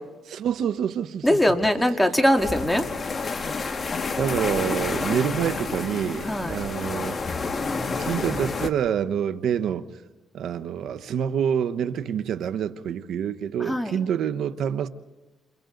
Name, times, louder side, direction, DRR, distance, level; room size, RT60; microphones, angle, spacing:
voice 1, 0.3-1.4 3.8-3.9 4.2-7.2 7.8-9.9 10.3-14.9, right 8 dB, 70° right, 1.0 m, -27 dB
voice 2, 1.2-2.9 6.3-6.6 13.6-14.0, equal, 5° left, 2.2 m, -21 dB
sound 1, 2.4-8.7, left 4 dB, 35° left, 1.7 m, -29 dB
30.0 x 28.5 x 3.9 m
cardioid pair, 90°, 0 cm